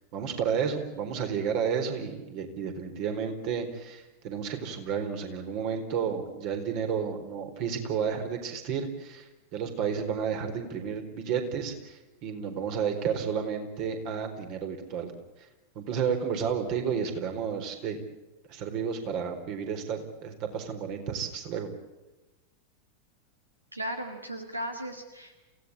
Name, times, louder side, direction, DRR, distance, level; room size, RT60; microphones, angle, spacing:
voice 1, 0.1-9.3 9.5-15.1 15.8-18.0 18.5-21.7, right 7 dB, 45° right, 6 dB, 4.1 m, -31 dB
voice 2, 23.7-25.4, right 1 dB, 85° right, 6 dB, 1.9 m, -36 dB
28.5 x 17.0 x 8.5 m, 1.1 s
figure-of-eight pair, 90°, 0 cm